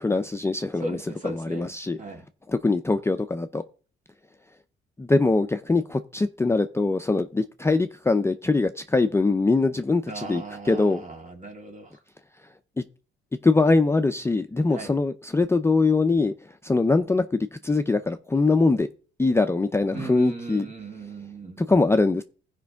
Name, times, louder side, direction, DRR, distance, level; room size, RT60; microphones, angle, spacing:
voice 1, 0.0-1.0 1.2-2.0 2.5-3.6 5.0-11.0 13.4-16.3 16.6-18.9 19.2-20.7 21.6-22.2, left 3 dB, 15° left, 0.5 m, -22 dB
voice 2, 0.8-1.7 2.0-2.2 10.1-12.0 14.7-14.9 19.9-21.7, right 3 dB, 40° right, 2.4 m, -37 dB
15.5 x 5.2 x 3.5 m
cardioid pair, 90°, 20 cm